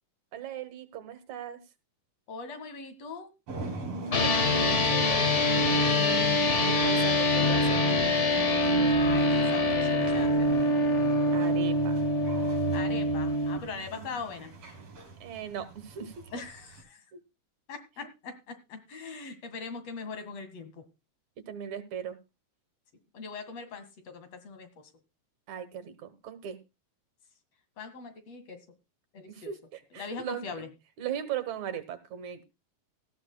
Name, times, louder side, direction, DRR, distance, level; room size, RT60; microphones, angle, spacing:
voice 1, 0.3-1.6 4.1-5.3 5.7-6.3 6.7-8.0 11.3-12.0 13.7-14.2 15.2-16.1 17.1-17.2 21.4-22.2 25.5-26.6 29.3-30.5 31.0-32.4, right 8 dB, 75° right, 11 dB, 2.7 m, -38 dB
voice 2, 2.3-3.3 5.9-6.2 9.0-10.5 12.7-14.5 16.3-17.0 17.7-20.8 23.1-24.9 27.8-28.7 29.1-29.5 29.9-30.7, left 4 dB, 60° left, 9 dB, 3.0 m, -41 dB
sound 1, 3.5-16.8, right 3 dB, 55° right, 5.1 m, -39 dB
sound 2, 4.1-13.6, left 1 dB, 40° left, 1.1 m, -25 dB
18.5 x 13.5 x 2.3 m, 0.27 s
omnidirectional pair, 3.3 m